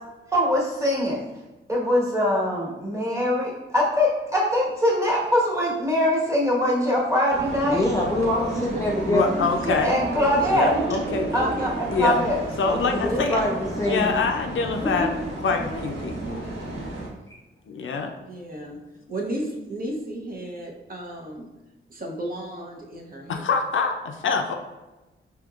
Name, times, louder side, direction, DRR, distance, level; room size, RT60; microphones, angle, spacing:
voice 1, 0.3-1.2 1.7-7.8 9.6-10.7 11.3-12.4 12.7-13.1, left 1 dB, 15° right, -5 dB, 1.2 m, -23 dB
sound 1, 7.3-17.1, right 1 dB, 75° right, 1.2 m, -32 dB
voice 2, 7.7-9.4 12.7-14.1 14.8-15.1, left 1 dB, 15° left, -3 dB, 0.4 m, -25 dB
voice 3, 9.1-10.0 10.5-11.3 11.9-12.3 12.6-13.4 13.9-15.1 15.4-16.4 17.7-18.1 23.3-24.5, left 4 dB, 70° left, 4 dB, 0.5 m, -25 dB
voice 4, 11.3-11.7 12.0-12.1 13.1-13.2 18.2-18.8 19.1-21.5 21.9-23.5, right 1 dB, 45° right, -1 dB, 0.8 m, -34 dB
5.1 x 2.9 x 2.4 m, 1.1 s
wide cardioid pair, 110°, 21 cm